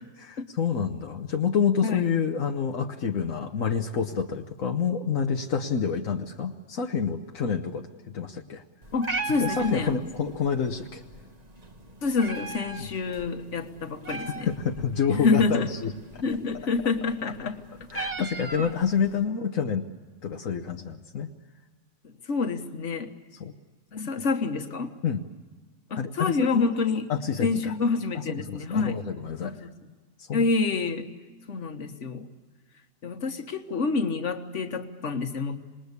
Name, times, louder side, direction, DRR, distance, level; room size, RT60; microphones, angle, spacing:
voice 1, 0.2-7.9 8.1-8.6 9.4-11.0 12.8-12.9 14.1-15.9 17.9-19.9 20.2-21.3 23.4-23.5 25.0-25.2 26.0-26.7 27.1-27.7 28.1-29.6 30.2-30.4, left 6 dB, 85° left, 4 dB, 1.5 m, -28 dB
Meow, 8.8-19.2, right 3 dB, 30° right, 1.4 m, -39 dB
voice 2, 8.9-10.0 12.0-14.5 15.1-15.7 16.2-17.6 22.0-23.1 23.9-24.9 25.9-27.1 27.4-29.0 29.4-29.7 30.3-31.1 31.5-32.3 33.0-35.6, left 4 dB, 65° left, 6 dB, 1.8 m, -27 dB
27.0 x 20.5 x 8.3 m, 1.4 s
omnidirectional pair, 1.4 m